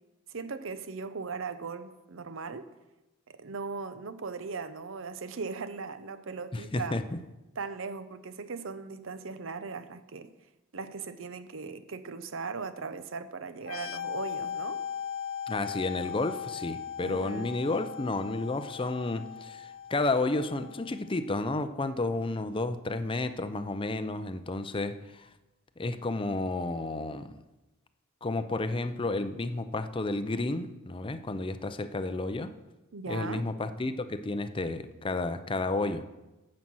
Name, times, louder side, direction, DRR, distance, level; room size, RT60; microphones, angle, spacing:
voice 1, 0.3-2.7 3.3-7.0 7.6-10.3 10.7-14.8 17.0-17.5 32.9-33.5, right 4 dB, 65° right, 0.7 m, -38 dB
voice 2, 6.5-7.2 15.5-25.3 25.8-27.3 28.2-32.5 33.1-36.0, left 2 dB, 25° left, 0.5 m, -31 dB
sound 1, 13.6-21.1, left 8 dB, 65° left, 0.6 m, -39 dB
9.3 x 7.7 x 6.2 m
head